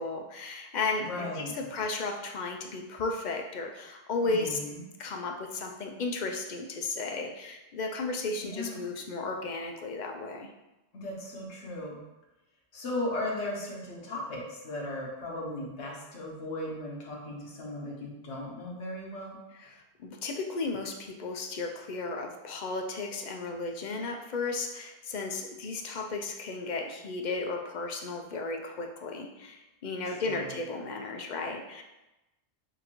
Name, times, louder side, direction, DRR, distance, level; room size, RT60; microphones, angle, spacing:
voice 1, 0.0-4.6 5.0-10.5 19.6-19.8 20.0-31.8, left 3 dB, 55° left, 2 dB, 0.5 m, -34 dB
voice 2, 1.0-1.5 4.2-4.8 8.4-8.8 10.9-12.0 12.7-19.4 30.0-30.6, left 1 dB, 85° left, -3 dB, 1.2 m, -37 dB
6.3 x 2.5 x 2.9 m, 0.99 s
omnidirectional pair, 1.1 m